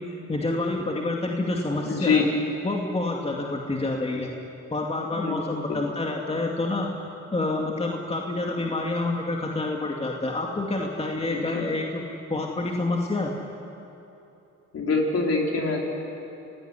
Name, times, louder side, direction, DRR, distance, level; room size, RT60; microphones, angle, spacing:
voice 1, 0.3-2.3 2.6-4.3 4.7-6.9 7.3-12.0 12.3-13.3, left 2 dB, 20° left, 0 dB, 2.5 m, -28 dB
voice 2, 1.8-2.2 5.1-5.3 5.7-5.8 11.3-11.4 14.7-15.8, left 4 dB, 50° left, -1 dB, 5.3 m, -24 dB
27.5 x 17.5 x 9.9 m, 2.9 s
cardioid pair, 90°, 30 cm